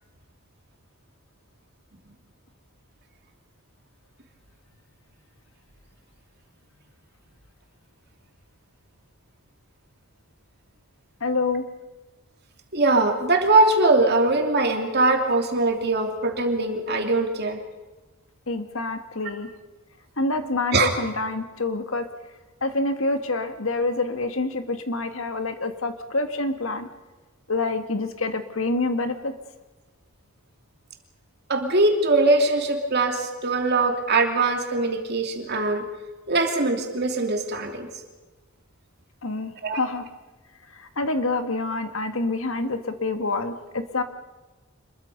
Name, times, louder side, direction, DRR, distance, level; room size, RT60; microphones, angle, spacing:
voice 1, 11.2-11.7 18.5-19.5 20.2-22.1 22.6-26.9 27.5-29.3 39.2-40.1 40.7-44.0, left 2 dB, 70° left, 8 dB, 1.9 m, -27 dB
voice 2, 12.7-17.6 20.7-20.9 31.5-35.9 36.3-37.9 39.6-39.8, right 2 dB, 50° right, 4 dB, 2.7 m, -21 dB
27.0 x 22.0 x 5.4 m, 1.2 s
head